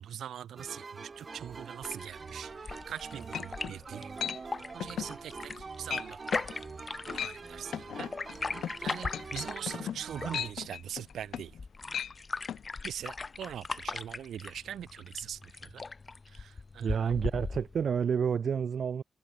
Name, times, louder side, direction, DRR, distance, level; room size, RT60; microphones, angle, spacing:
voice 1, 0.0-4.1 4.7-6.4 7.1-8.1 8.6-11.6 12.8-15.8 16.3-17.1, right 10 dB, 90° right, 5.0 m, -42 dB
sound 1, 0.6-10.5, right 4 dB, 40° right, 3.5 m, -45 dB
sound 2, 1.8-17.8, left 4 dB, 30° left, 5.0 m, -40 dB
sound 3, 2.9-3.0 3.3-3.8 4.2-4.4 4.8-5.1 5.5-5.6 5.9-6.1 6.3-6.5 7.0-7.4 7.7-11.6 11.9-12.1 12.5-12.6, left 9 dB, 90° left, 1.3 m, -37 dB
voice 2, 16.8-19.0, right 7 dB, 60° right, 2.0 m, -29 dB
cardioid pair, 110°, 0 cm